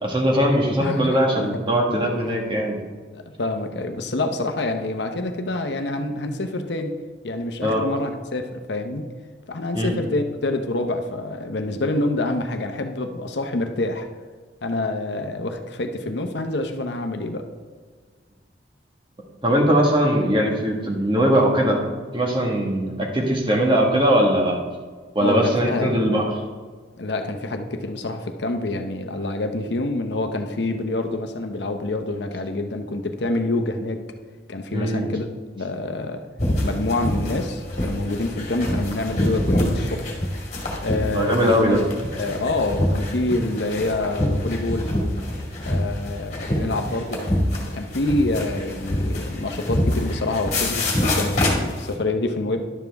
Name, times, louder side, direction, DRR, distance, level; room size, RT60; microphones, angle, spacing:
voice 1, 0.0-2.8 7.6-7.9 9.7-9.9 19.4-21.8 22.1-24.6 25.1-26.3 34.7-35.0 41.1-41.8, equal, 25° right, -1 dB, 1.5 m, -20 dB
voice 2, 0.8-1.6 3.1-7.0 7.2-9.0 9.5-14.1 14.6-17.4 25.2-26.2 27.0-34.0 34.5-35.3 35.5-36.2 36.6-40.1 40.8-41.8 42.1-44.9 45.7-47.2 47.5-52.6, left 2 dB, 65° left, 6 dB, 0.8 m, -27 dB
sound 1, 36.4-51.9, left 1 dB, 40° left, 2.1 m, -25 dB
11.0 x 7.2 x 3.5 m, 1.5 s
head